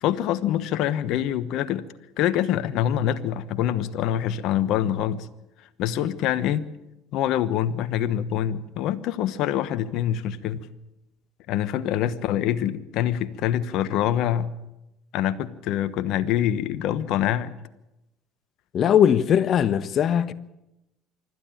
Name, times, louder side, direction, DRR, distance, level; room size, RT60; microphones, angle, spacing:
voice 1, 0.0-1.9 2.2-5.3 5.8-6.7 7.1-10.7 11.5-14.5 15.1-17.5, left 11 dB, 65° left, 1.1 m, -25 dB
voice 2, 18.7-20.3, left 9 dB, 50° left, 1.2 m, -20 dB
25.5 x 12.5 x 8.9 m
supercardioid pair, 85°, 0 cm